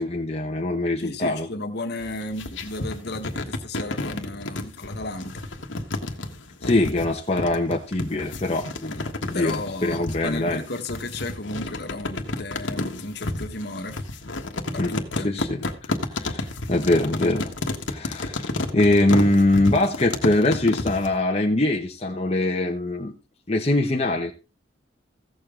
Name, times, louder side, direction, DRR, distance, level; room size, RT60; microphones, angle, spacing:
voice 1, 0.0-1.5 6.6-10.6 14.8-14.9 15.2-15.6 16.1-17.5 17.9-18.5 18.7-23.1 23.5-24.3, left 2 dB, 30° left, 1.0 m, -23 dB
voice 2, 1.0-5.4 9.3-14.0 14.7-15.3, left 2 dB, 55° left, 1.4 m, -34 dB
sound 1, 2.0-21.1, left 2 dB, 75° left, 1.4 m, -31 dB
16.0 x 7.1 x 3.7 m
head